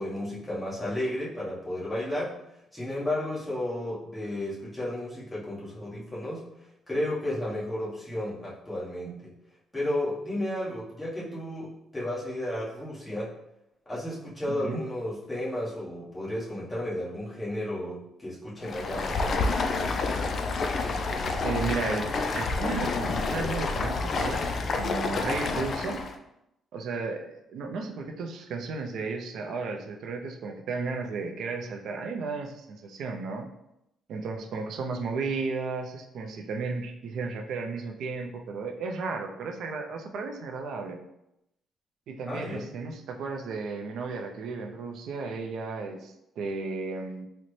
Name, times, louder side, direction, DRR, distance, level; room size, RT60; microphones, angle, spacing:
voice 1, 0.0-2.4 2.7-6.5 6.9-9.3 9.7-13.3 13.9-19.6 42.3-42.6, left 1 dB, 15° left, -7 dB, 1.1 m, -33 dB
voice 2, 14.5-14.8 21.4-22.1 22.3-26.0 26.7-33.5 34.1-41.0 42.1-47.3, right 4 dB, 75° right, 4 dB, 0.4 m, -34 dB
Stream, 18.6-26.2, left 3 dB, 55° left, 0.3 m, -29 dB
3.9 x 2.1 x 3.1 m, 0.84 s
cardioid pair, 90°, 0 cm